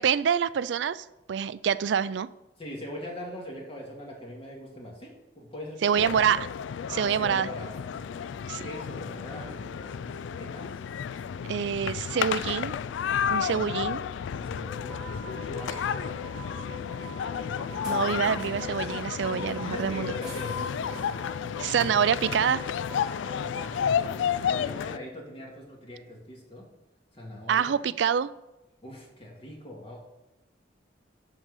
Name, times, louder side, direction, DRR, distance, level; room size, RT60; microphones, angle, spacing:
voice 1, 0.0-2.3 5.8-6.5 6.9-7.5 8.5-8.7 11.4-12.7 13.3-14.0 17.9-20.1 21.6-22.6 27.5-28.3, right 7 dB, 75° right, 17 dB, 0.3 m, -26 dB
voice 2, 2.6-6.1 6.9-8.2 8.6-10.7 13.6-13.7 14.3-17.0 19.2-21.2 21.8-21.9 23.3-26.7 27.1-27.8 28.8-30.0, left 1 dB, 30° left, -1 dB, 2.0 m, -42 dB
sound 1, 6.0-25.0, left 7 dB, 90° left, 0.3 m, -32 dB
sound 2, 6.5-24.3, left 2 dB, 5° right, 2.6 m, -45 dB
11.0 x 3.9 x 6.5 m, 0.99 s
head